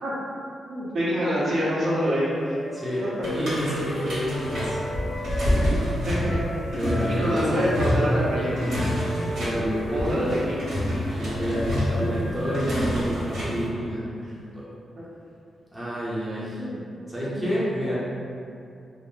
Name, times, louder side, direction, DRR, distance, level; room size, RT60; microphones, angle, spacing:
voice 1, 0.7-2.5 6.1-6.4 6.8-8.9 9.9-10.6 12.2-12.3 14.3-14.4 16.6-16.8 17.2-17.4, equal, 50° right, -7 dB, 0.5 m, -26 dB
sound 1, 1.2-13.5, left 1 dB, 85° left, 0.5 m, -40 dB
voice 2, 2.7-4.8 6.8-7.7 9.4-10.3 11.1-14.1 14.5-14.6 15.7-16.6 17.1-18.0, equal, 5° right, -9 dB, 0.6 m, -29 dB
Wind instrument woodwind instrument, 2.8-6.6 6.8-10.8, left 1 dB, 25° left, 0.3 m, -36 dB
sound 2, 3.2-13.7, equal, 70° right, 1.1 m, -27 dB
2.4 x 2.0 x 3.6 m, 2.5 s
wide cardioid pair, 160°, 0 cm